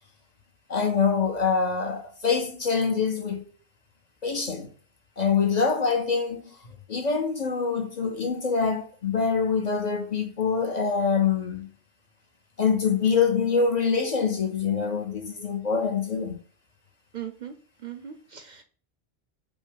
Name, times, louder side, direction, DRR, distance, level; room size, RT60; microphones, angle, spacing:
voice 1, 0.7-3.4 4.2-4.7 5.2-6.6 6.9-11.7 12.6-16.4, left 5 dB, 45° left, 0.8 m, -25 dB
voice 2, 17.1-17.5 17.8-18.6, right 10 dB, 55° right, 0.6 m, -38 dB
5.2 x 2.1 x 4.7 m
omnidirectional pair, 1.0 m